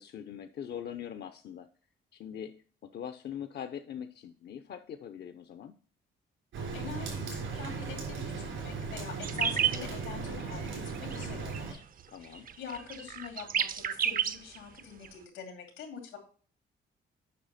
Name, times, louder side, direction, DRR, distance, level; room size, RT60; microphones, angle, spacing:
voice 1, 0.0-1.7 2.1-2.5 2.8-5.7 12.1-12.5, left 9 dB, 55° left, 8 dB, 0.6 m, -42 dB
Rain, 6.5-11.7, right 5 dB, 80° right, 3.4 m, -37 dB
voice 2, 6.7-11.8 12.2-16.2, left 6 dB, 90° left, 3 dB, 2.8 m, -44 dB
sound 1, 9.2-9.8 10.4-10.7 10.9-11.3 11.5-11.8 12.0-15.1, right 8 dB, 45° right, 0.6 m, -31 dB
8.4 x 5.5 x 4.1 m, 0.43 s
cardioid pair, 90°, 20 cm